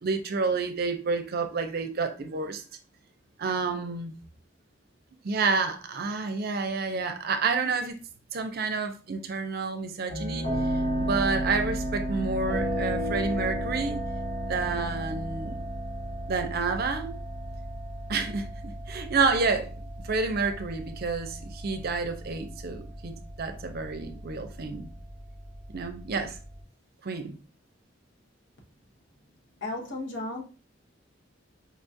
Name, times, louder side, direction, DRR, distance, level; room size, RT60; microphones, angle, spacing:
voice 1, 0.0-2.6 3.4-4.1 5.2-8.0 8.3-10.5 11.0-14.0 14.5-15.6 16.3-17.1 18.1-19.7 20.0-24.9 25.7-26.4 27.0-27.4, right 4 dB, 55° right, 0.5 m, -29 dB
sound 1, 10.1-26.6, equal, 55° left, 2.0 m, -34 dB
voice 2, 29.6-30.4, left 2 dB, 80° left, 1.0 m, -34 dB
4.8 x 2.4 x 2.6 m
head